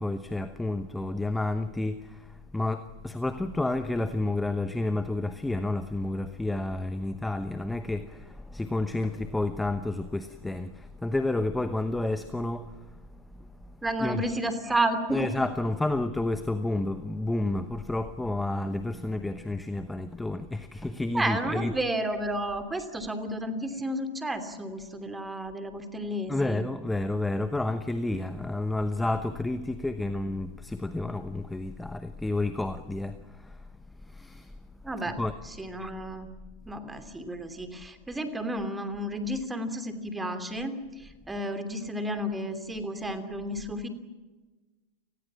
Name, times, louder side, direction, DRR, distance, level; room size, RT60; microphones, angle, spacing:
voice 1, 0.0-13.0 13.3-14.2 15.1-21.7 26.3-33.6 34.0-34.5 35.2-35.3, left 2 dB, 5° left, 1.0 m, -30 dB
voice 2, 13.8-15.3 21.1-26.6 34.8-35.2 35.6-36.3 36.7-43.9, right 1 dB, 10° right, 2.9 m, -32 dB
30.0 x 20.0 x 7.4 m
figure-of-eight pair, 90°, 0 cm